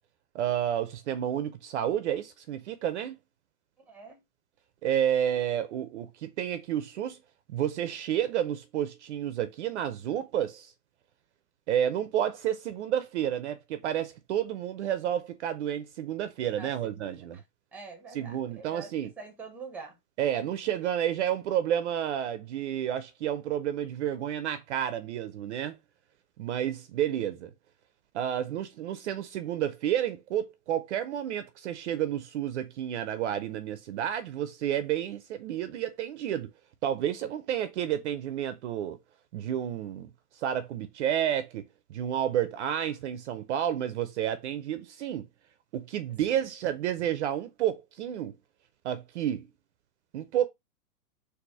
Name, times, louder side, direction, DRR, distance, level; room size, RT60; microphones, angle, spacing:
voice 1, 0.3-3.2 4.8-7.2 7.5-10.7 11.7-17.4 18.1-19.1 20.2-25.8 26.4-27.5 28.1-36.5 36.8-39.0 39.3-40.1 40.4-41.6 41.9-45.3 45.7-48.3 48.8-49.5 50.1-50.5, right 10 dB, 45° right, 0.5 m, -30 dB
voice 2, 3.9-4.2 16.6-17.4 17.7-20.0 46.3-46.4, right 4 dB, 5° right, 0.8 m, -46 dB
4.1 x 2.6 x 4.6 m
hypercardioid pair, 145°, 48 cm